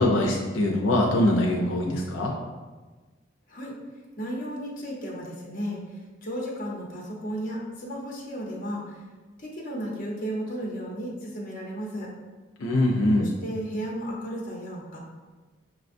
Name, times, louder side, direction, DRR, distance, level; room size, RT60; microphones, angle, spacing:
voice 1, 0.0-2.3 12.6-13.3, left 1 dB, 85° left, -1 dB, 0.5 m, -23 dB
voice 2, 4.2-5.8 6.2-8.9 9.4-12.1 13.2-15.0, equal, 45° left, -3 dB, 0.9 m, -34 dB
5.8 x 2.3 x 2.5 m, 1.3 s
head